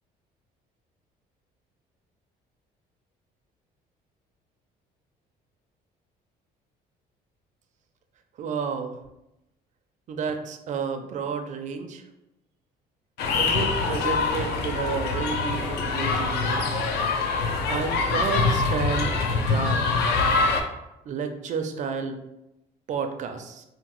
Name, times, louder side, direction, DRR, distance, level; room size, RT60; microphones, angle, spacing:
voice 1, 8.4-9.0 10.1-12.0 13.4-16.7 17.7-19.9 21.1-22.2 22.9-23.6, right 5 dB, 45° right, 6 dB, 0.4 m, -31 dB
sound 1, 13.2-20.6, left 4 dB, 75° left, 0.4 m, -24 dB
2.9 x 2.0 x 2.9 m, 0.92 s
cardioid pair, 110°, 17 cm